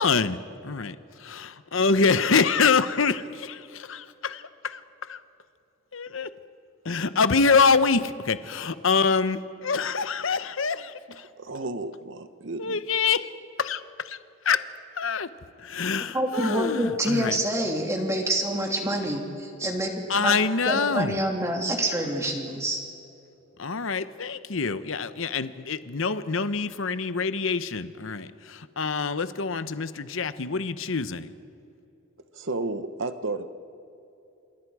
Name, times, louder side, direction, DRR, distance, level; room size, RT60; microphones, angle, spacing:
voice 1, 0.0-0.9 1.3-5.2 5.9-6.3 6.8-11.3 12.6-13.3 13.6-14.2 14.4-14.6 14.9-15.3 15.6-17.4 20.1-21.2 23.6-31.3, left 5 dB, 65° left, 12 dB, 0.9 m, -25 dB
voice 2, 11.4-12.8 32.3-33.5, right 2 dB, 55° right, 10 dB, 1.0 m, -32 dB
voice 3, 16.1-19.9 20.2-20.3 20.7-22.8, right 1 dB, 15° right, 1 dB, 2.7 m, -27 dB
28.0 x 27.5 x 4.9 m, 2.8 s
head